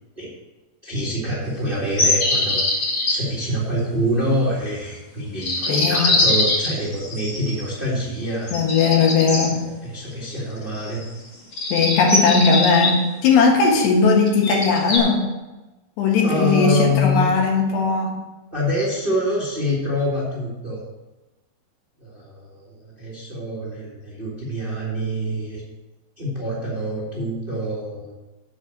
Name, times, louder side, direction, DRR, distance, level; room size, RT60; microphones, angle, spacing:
voice 1, 0.8-2.6 3.1-8.6 9.5-11.0 16.2-17.3 18.5-20.8 22.0-25.6 26.2-28.1, left 1 dB, 15° right, -6 dB, 1.9 m, -25 dB
sound 1, 2.0-3.2 5.4-7.7 8.5-9.5 10.7-11.1 11.5-12.9 14.3-15.0, left 2 dB, 45° left, 2.7 m, -22 dB
voice 2, 5.7-6.1 8.5-9.6 11.7-15.3 16.0-18.2, left 4 dB, 85° left, 1 dB, 3.7 m, -18 dB
7.6 x 6.5 x 7.8 m, 1.1 s
omnidirectional pair, 4.7 m